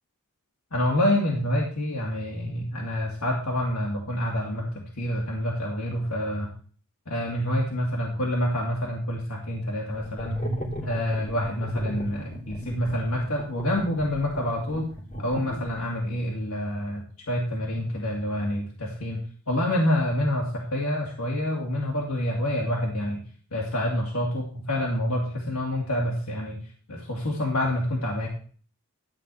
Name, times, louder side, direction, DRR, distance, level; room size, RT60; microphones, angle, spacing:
voice 1, 0.7-6.5 7.1-10.4 10.8-14.9 15.2-23.2 23.5-28.3, left 1 dB, 85° left, -2 dB, 2.5 m, -27 dB
sound 1, 9.9-16.0, right 1 dB, 35° left, 3.0 m, -35 dB
13.0 x 4.6 x 8.5 m, 0.43 s
head